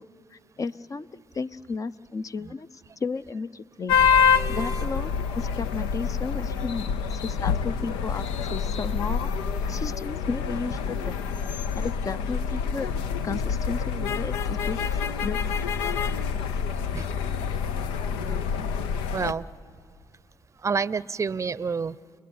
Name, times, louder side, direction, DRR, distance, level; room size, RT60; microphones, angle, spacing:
voice 1, 0.0-4.0 4.5-9.3 9.7-11.2 11.7-12.9 13.2-14.8 15.2-15.4, left 4 dB, 40° left, 14 dB, 0.7 m, -34 dB
sound 1, 3.9-19.3, left 6 dB, 90° left, 0.7 m, -27 dB
sound 2, 5.8-18.3, left 1 dB, 20° left, 2.2 m, -45 dB
voice 2, 19.1-19.5 20.6-22.2, right 5 dB, 35° right, 20 dB, 0.6 m, -28 dB
30.0 x 20.0 x 9.6 m, 2.3 s
supercardioid pair, 60°, 9 cm